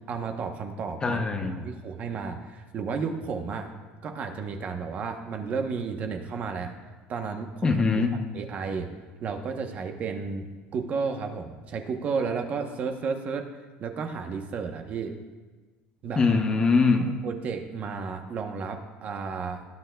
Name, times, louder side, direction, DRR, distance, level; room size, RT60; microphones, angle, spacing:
voice 1, 0.1-1.2 1.6-3.7 4.0-6.7 7.1-7.8 8.3-8.9 9.2-10.5 10.7-13.5 13.8-15.1 16.0-16.2 17.2-19.7, right 5 dB, 35° right, 5 dB, 0.9 m, -32 dB
voice 2, 1.0-1.6 7.6-8.1 16.2-17.1, left 4 dB, 20° left, 5 dB, 0.7 m, -22 dB
19.0 x 10.0 x 2.3 m, 1.3 s
cardioid pair, 150°, 4 cm